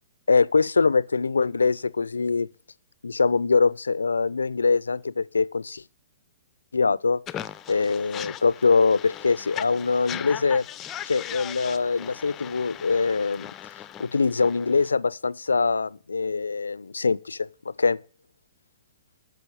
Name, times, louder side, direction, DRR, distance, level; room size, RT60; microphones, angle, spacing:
voice 1, 0.3-2.5 3.0-5.8 6.7-7.2 7.7-10.7 11.1-13.5 14.0-18.0, left 4 dB, 85° left, 0.5 m, -23 dB
sound 1, 7.3-14.9, left 11 dB, 25° left, 0.6 m, -38 dB
9.8 x 6.4 x 8.4 m
hypercardioid pair, 120°, 0 cm